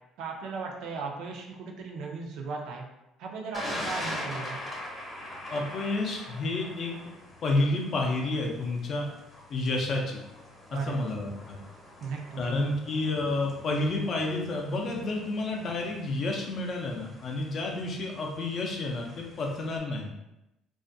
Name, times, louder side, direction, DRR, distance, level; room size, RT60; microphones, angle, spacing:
voice 1, 0.2-2.9 3.2-4.6 10.7-11.1 12.0-12.4, right 4 dB, 70° right, 1 dB, 0.5 m, -37 dB
Thunder, 3.5-19.8, left 1 dB, 30° left, 0.8 m, -43 dB
voice 2, 5.5-6.9 7.4-9.1 9.5-10.2 10.7-11.6 12.4-20.1, left 2 dB, 45° left, 1 dB, 0.5 m, -30 dB
2.4 x 2.1 x 2.6 m, 0.93 s
cardioid pair, 130°, 0 cm